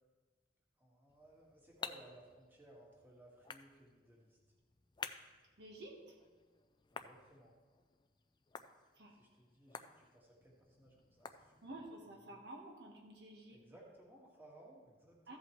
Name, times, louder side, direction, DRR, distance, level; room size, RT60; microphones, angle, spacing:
voice 1, 0.8-4.4 6.9-7.6 9.1-11.8 12.2-12.4 13.5-15.4, right 1 dB, 10° right, -3 dB, 1.8 m, -61 dB
sound 1, 1.1-12.0, left 5 dB, 25° left, 0.4 m, -53 dB
voice 2, 5.6-6.2 8.9-9.2 11.6-13.6 15.3-15.4, right 1 dB, 65° right, 0 dB, 1.4 m, -51 dB
14.5 x 8.0 x 3.1 m, 1.4 s
head